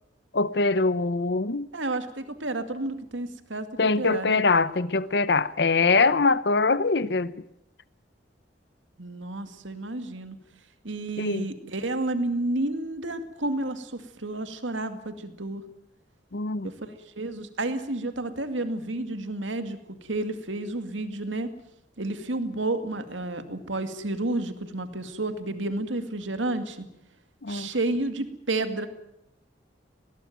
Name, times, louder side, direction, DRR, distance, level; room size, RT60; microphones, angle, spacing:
voice 1, 0.3-1.7 3.8-7.3 11.2-11.5 16.3-16.7 27.4-27.7, left 3 dB, 60° left, 0.8 m, -23 dB
voice 2, 1.7-3.7 4.0-4.4 9.0-10.4 10.8-15.6 16.6-21.5 22.0-26.8 27.5-28.9, right 2 dB, 90° right, 2.3 m, -31 dB
20.0 x 18.5 x 9.3 m
head